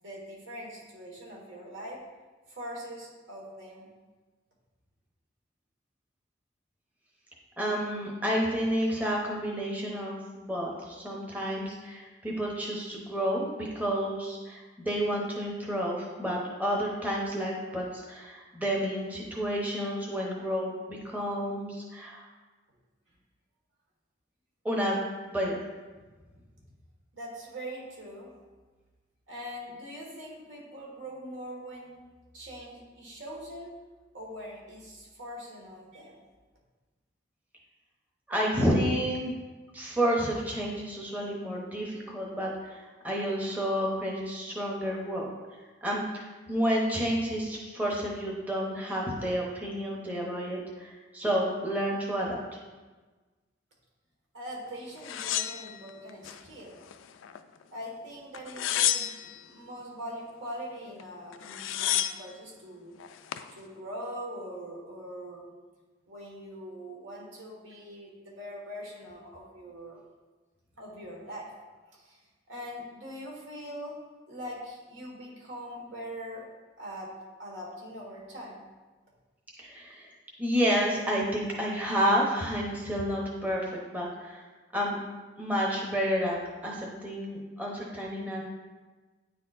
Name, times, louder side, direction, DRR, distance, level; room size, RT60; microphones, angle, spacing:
voice 1, 0.0-2.0 2.5-3.9 27.1-28.3 29.3-32.0 32.3-33.7 34.1-36.2 54.3-56.8 57.7-62.9 63.5-65.5 66.1-70.0 70.8-71.5 71.9-72.2 72.5-74.0 74.3-76.5 76.8-77.1 77.4-78.6, equal, 80° right, -3 dB, 1.6 m, -42 dB
voice 2, 7.6-22.2 24.6-25.0 25.3-25.6 38.3-39.3 39.7-45.3 45.8-52.4 79.6-80.1 80.4-84.4 84.7-85.0 85.4-86.4 86.6-88.4, equal, 10° right, -3 dB, 0.8 m, -30 dB
sound 1, 55.0-56.4 56.8-57.6 58.3-59.4 61.0-61.1 61.3-62.3 63.0-63.5, left 12 dB, 85° left, 0.3 m, -31 dB
9.2 x 4.2 x 2.5 m, 1.3 s
head